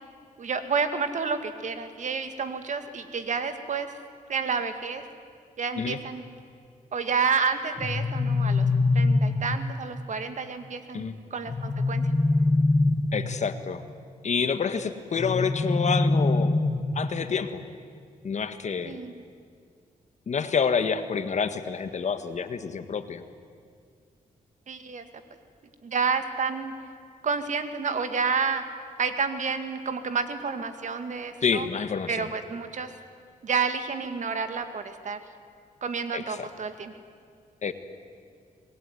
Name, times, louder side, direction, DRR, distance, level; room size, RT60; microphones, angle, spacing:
voice 1, 0.4-3.9 4.3-5.0 5.6-6.2 6.9-8.7 8.9-11.1 11.3-12.0 18.8-19.1 24.7-25.0 25.8-26.7 27.2-28.6 29.0-31.7 32.1-32.9 33.4-35.2 35.8-36.9, right 5 dB, 60° right, 9 dB, 2.1 m, -29 dB
sound 1, 7.8-9.8 11.5-13.4 15.2-17.1, left 2 dB, 25° left, 1.6 m, -24 dB
voice 2, 13.1-13.8 14.2-16.5 16.9-17.6 18.2-19.0 20.3-23.2 31.4-32.3 36.1-36.5 37.6-37.7, left 6 dB, 55° left, 10 dB, 1.6 m, -28 dB
25.5 x 20.0 x 9.5 m, 2.2 s
cardioid pair, 95°, 14 cm